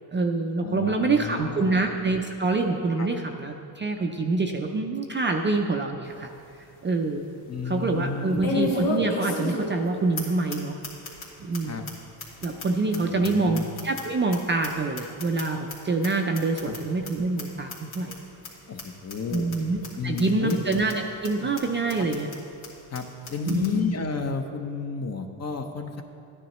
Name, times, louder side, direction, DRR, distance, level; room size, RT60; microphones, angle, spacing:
voice 1, 0.1-6.3 6.8-7.2 7.7-10.8 11.4-11.9 12.4-18.1 19.3-22.3 23.5-24.0, right 3 dB, 25° right, 3 dB, 0.5 m, -26 dB
voice 2, 0.6-1.8 3.0-3.1 7.5-8.6 11.7-11.8 13.1-13.6 16.6-16.7 18.7-19.5 20.0-20.6 21.4-21.5 22.9-23.0 23.3-26.0, left 5 dB, 30° left, 5 dB, 0.8 m, -31 dB
sound 1, 6.0-6.1 6.6-6.7 8.4-9.9 10.2-10.3 10.5-10.6 10.8-11.2 11.5-11.6 11.9-12.0 12.2-14.4 14.6-15.7 16.0-16.1 16.3-16.8 17.0-17.1 17.4-17.5 17.7-18.1 18.4-18.5 18.8-18.9 19.1-19.6 19.8-19.9 20.2-20.3 20.5-20.9 21.2-21.3 21.6-21.7 21.9-22.4 22.6-22.7 22.9-23.0 23.2-23.7, left 3 dB, 70° left, 2.6 m, -31 dB
13.0 x 9.9 x 3.1 m, 2.5 s
cardioid pair, 115°, 49 cm